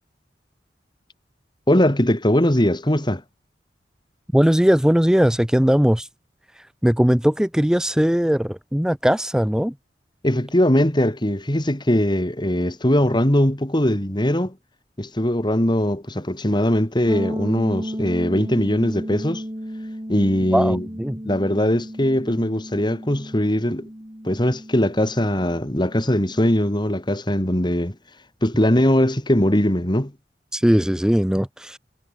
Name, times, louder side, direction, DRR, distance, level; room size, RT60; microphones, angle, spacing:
voice 1, 1.7-3.2 10.2-14.5 15.0-19.4 20.1-20.8 21.2-23.9 24.2-27.9 28.4-30.1, left 1 dB, 25° left, 2.9 m, -20 dB
voice 2, 4.3-6.1 6.5-9.7 20.5-21.2 30.5-31.8, equal, 5° right, 0.6 m, -19 dB
sound 1, 17.1-26.8, equal, 25° right, 6.1 m, -34 dB
head